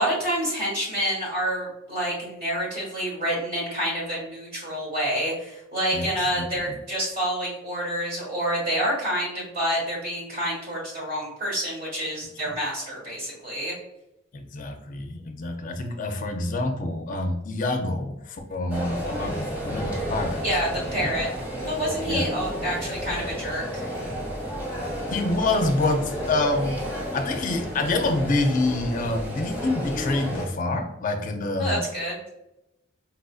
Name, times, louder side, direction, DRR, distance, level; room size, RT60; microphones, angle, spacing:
voice 1, 0.0-13.7 20.4-21.3 21.6-23.9 31.6-32.1, equal, 45° right, -5 dB, 1.3 m, -28 dB
voice 2, 6.4-6.7 14.3-20.4 21.0-21.1 22.1-22.4 25.1-26.8 27.1-31.9, left 2 dB, 40° left, 5 dB, 0.4 m, -27 dB
sound 1, 18.7-30.5, equal, 10° right, 1.0 m, -32 dB
4.2 x 2.5 x 2.4 m, 0.89 s
head